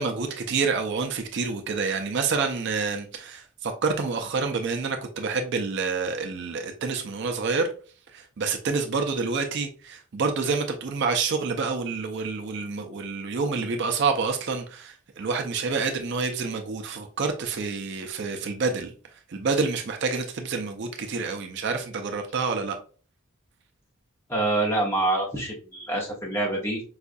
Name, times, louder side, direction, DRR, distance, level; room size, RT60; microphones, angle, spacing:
voice 1, 0.0-7.7 8.1-18.9 19.3-22.8, right 4 dB, 50° right, 0.4 m, -28 dB
voice 2, 24.3-26.8, right 2 dB, 10° left, 0.9 m, -26 dB
4.8 x 2.3 x 2.6 m
head